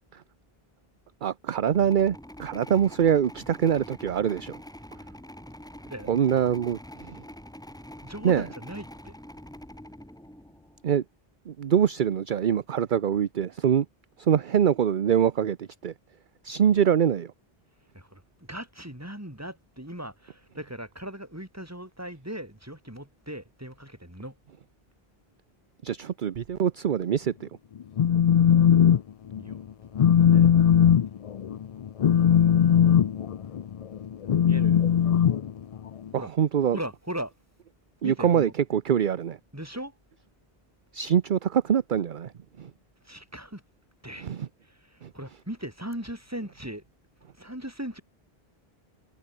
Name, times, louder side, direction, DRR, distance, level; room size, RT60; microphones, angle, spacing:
voice 1, 1.2-4.5 6.1-7.2 8.2-8.5 10.8-11.0 11.5-13.9 14.2-15.9 16.4-17.3 25.8-27.5 36.1-36.8 38.0-39.4 40.9-42.3 42.6-42.7 44.2-44.5 45.0-45.1, right 8 dB, 55° right, 0.8 m, -24 dB
sound 1, 1.5-10.9, left 1 dB, 5° left, 0.9 m, -45 dB
voice 2, 5.9-6.4 8.0-9.1 17.9-24.4 29.4-29.6 30.0-30.5 34.4-34.8 36.2-36.3 36.7-37.3 38.0-38.5 39.5-39.9 43.0-43.6 44.0-44.3 44.6-46.8 47.4-48.0, right 1 dB, 15° right, 4.4 m, -38 dB
Telephone, 27.8-29.0 29.3-29.6 30.0-36.1, left 9 dB, 50° left, 0.4 m, -20 dB
omnidirectional pair, 1.0 m